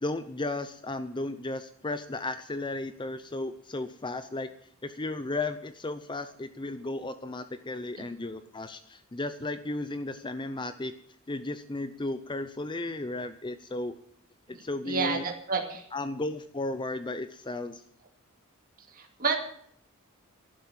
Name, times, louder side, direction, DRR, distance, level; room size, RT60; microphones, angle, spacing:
voice 1, 0.0-4.5 4.8-10.9 11.3-13.9 14.5-15.2 15.9-17.8, left 2 dB, 20° left, 11 dB, 0.6 m, -34 dB
voice 2, 14.5-15.8 18.9-19.4, right 4 dB, 40° right, 2 dB, 2.5 m, -30 dB
11.5 x 11.5 x 7.4 m, 0.64 s
head